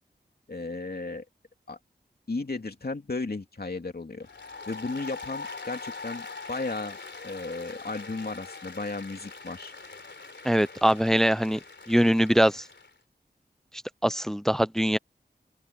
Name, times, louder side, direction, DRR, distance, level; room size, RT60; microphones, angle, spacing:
voice 1, 0.5-1.2 1.7-1.8 2.3-4.3 4.7-7.0 7.2-9.7, left 3 dB, 55° left, 2.6 m, -34 dB
Applause, 4.2-12.9, left 4 dB, 80° left, 3.6 m, -42 dB
voice 2, 10.4-11.6 11.9-12.6 14.0-15.0, equal, ahead, 0.6 m, -22 dB
open air
wide cardioid pair, 45°, 19 cm